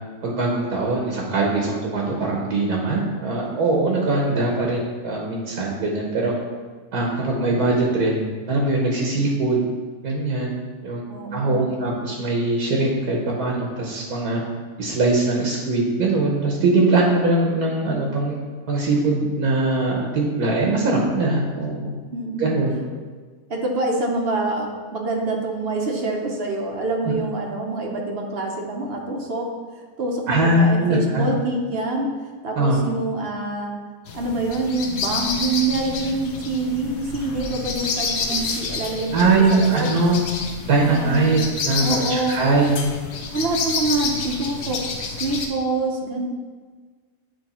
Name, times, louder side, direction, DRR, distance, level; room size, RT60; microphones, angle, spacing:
voice 1, 0.2-6.3 6.9-9.6 10.0-10.5 10.8-11.0 11.3-14.4 14.8-18.4 18.7-21.9 22.4-22.7 30.3-31.3 32.5-32.8 39.1-40.2 40.6-42.8, right 2 dB, 75° right, -2 dB, 1.4 m, -21 dB
voice 2, 11.1-12.0 22.1-22.5 23.5-29.5 30.0-32.1 32.4-33.7 34.1-39.9 40.8-41.3 41.8-42.4 43.3-46.3, right 2 dB, 50° right, 1 dB, 0.8 m, -26 dB
sound 1, 34.1-45.5, left 4 dB, 55° left, 0.8 m, -29 dB
9.0 x 3.1 x 4.2 m, 1.5 s
omnidirectional pair, 1.7 m